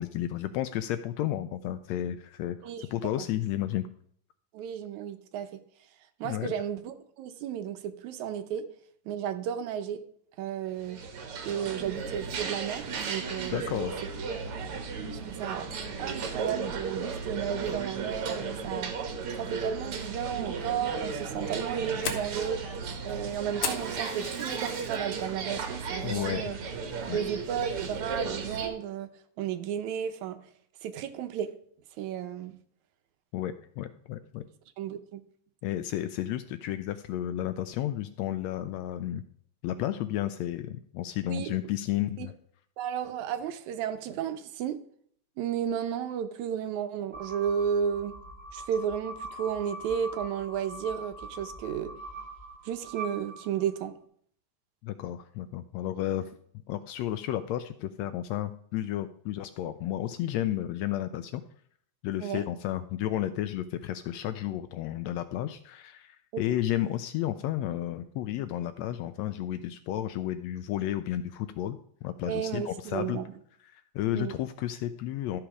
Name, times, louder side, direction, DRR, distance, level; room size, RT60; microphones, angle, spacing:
voice 1, 0.0-3.9 6.2-6.5 13.5-14.0 26.0-26.5 27.1-27.2 33.3-34.4 35.6-39.2 39.6-42.3 54.8-56.3 56.7-61.4 62.0-71.8 72.0-73.2 73.7-75.4, left 12 dB, 80° left, 11 dB, 1.6 m, -32 dB
voice 2, 4.5-5.5 6.2-8.7 9.1-10.0 10.4-11.0 11.4-13.9 15.1-15.7 16.0-18.9 19.4-22.6 23.0-26.6 27.1-29.1 29.4-30.4 30.8-31.5 32.0-32.6 34.8-35.2 41.3-41.5 42.2-42.3 42.8-44.8 45.4-48.1 48.5-51.9 52.7-53.9 62.2-62.4 66.3-66.4 72.3-73.3 74.1-74.3, right 9 dB, 80° right, 9 dB, 2.1 m, -33 dB
sound 1, 10.8-28.7, right 5 dB, 55° right, 1.8 m, -35 dB
Fire, 21.4-25.0 25.4-25.8 26.2-26.3 26.8-27.2, left 6 dB, 55° left, 1.7 m, -37 dB
sound 2, 47.1-53.9, right 2 dB, 10° left, 1.7 m, -42 dB
12.5 x 6.1 x 4.8 m, 0.62 s
omnidirectional pair, 3.4 m